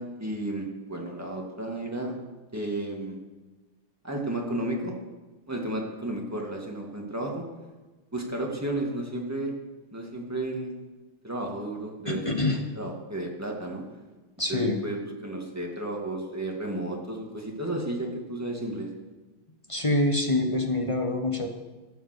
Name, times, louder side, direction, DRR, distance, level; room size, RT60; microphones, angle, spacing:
voice 1, 0.0-2.1 2.5-3.2 4.0-4.9 5.5-7.4 8.1-9.5 9.9-10.7 11.2-13.8 14.5-18.9, right 1 dB, 10° right, 0 dB, 1.8 m, -33 dB
voice 2, 12.1-12.6 14.4-14.8 19.7-21.5, left 2 dB, 30° left, 2 dB, 0.6 m, -25 dB
16.5 x 7.1 x 6.7 m, 1.2 s
omnidirectional pair, 2.4 m